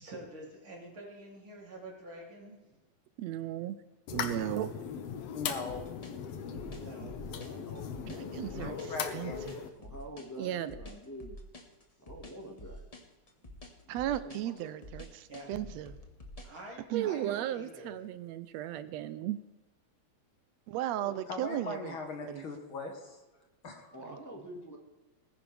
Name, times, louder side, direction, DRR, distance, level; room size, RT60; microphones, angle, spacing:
voice 1, 0.0-2.6 6.8-7.3 15.3-15.5 16.4-18.0, right 1 dB, 45° right, -2 dB, 3.8 m, -47 dB
voice 2, 3.2-3.8 4.1-4.7 6.3-6.7 7.0-7.1 8.1-8.8 9.1-9.6 10.4-10.7 13.9-16.0 16.9-19.4 20.7-21.9 22.3-22.4, right 12 dB, 75° right, 13 dB, 1.7 m, -35 dB
sound 1, 4.1-9.7, left 7 dB, 65° left, 1.9 m, -39 dB
voice 3, 5.3-5.9 8.5-9.4 21.3-23.2 23.6-24.0, left 3 dB, 50° left, 3 dB, 1.9 m, -40 dB
sound 2, 5.7-16.6, equal, 35° left, 0.6 m, -48 dB
voice 4, 7.2-9.2 9.7-11.4 12.0-12.8 14.2-14.7 20.9-21.2 23.9-24.8, right 1 dB, 10° left, 0 dB, 1.3 m, -47 dB
19.5 x 10.0 x 3.4 m, 1.2 s
omnidirectional pair, 3.3 m